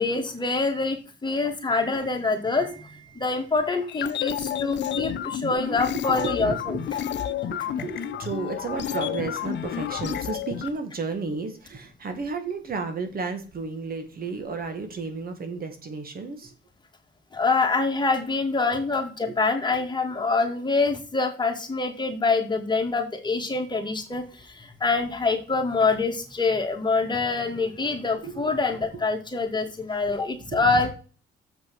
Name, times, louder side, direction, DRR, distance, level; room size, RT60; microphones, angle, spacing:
voice 1, 0.0-6.8 17.3-30.9, left 3 dB, 20° left, 3 dB, 2.2 m, -25 dB
sound 1, 3.9-10.7, left 10 dB, 60° left, 0.8 m, -30 dB
voice 2, 6.1-16.5 19.3-19.4 28.2-28.4 30.4-30.9, right 4 dB, 50° right, 7 dB, 1.8 m, -33 dB
7.4 x 6.0 x 6.3 m, 0.36 s
cardioid pair, 90°, 20 cm